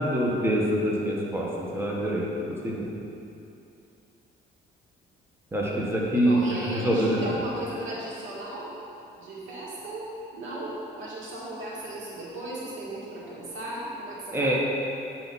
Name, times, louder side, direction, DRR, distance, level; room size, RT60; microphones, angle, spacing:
voice 1, 0.0-2.9 5.5-7.2 14.3-14.5, equal, 10° right, -4 dB, 1.4 m, -25 dB
voice 2, 6.2-8.7 9.1-10.0 10.3-14.5, right 1 dB, 80° right, -5 dB, 2.0 m, -36 dB
9.0 x 5.8 x 4.2 m, 2.7 s
cardioid pair, 90°, 20 cm